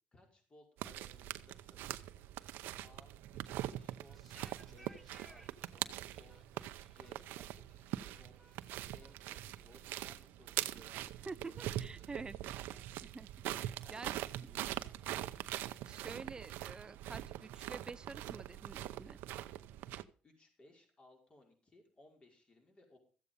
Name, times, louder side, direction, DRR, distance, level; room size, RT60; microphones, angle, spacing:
voice 1, 0.1-2.2 2.8-4.2 4.6-6.3 6.8-8.4 8.8-12.8 13.7-15.3 20.2-23.0, left 2 dB, 30° left, 5.3 m, -64 dB
sound 1, 0.8-20.0, right 13 dB, 80° right, 0.7 m, -43 dB
sound 2, 4.0-9.4, equal, 5° left, 2.4 m, -62 dB
voice 2, 11.3-12.4 13.0-13.3 13.6-14.1 15.8-19.2, right 4 dB, 25° right, 0.6 m, -48 dB
14.5 x 8.3 x 5.3 m
supercardioid pair, 80°, 3 cm